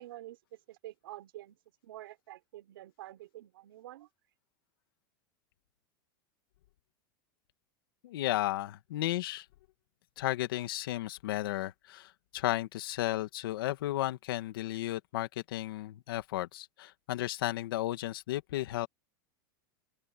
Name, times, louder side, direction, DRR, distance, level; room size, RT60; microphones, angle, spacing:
voice 1, 0.0-1.6 1.8-4.1, right 15 dB, 85° right, 5.6 m, -48 dB
voice 2, 8.0-9.5 10.2-18.9, left 15 dB, 85° left, 2.3 m, -34 dB
open air
supercardioid pair, 165°, 12 cm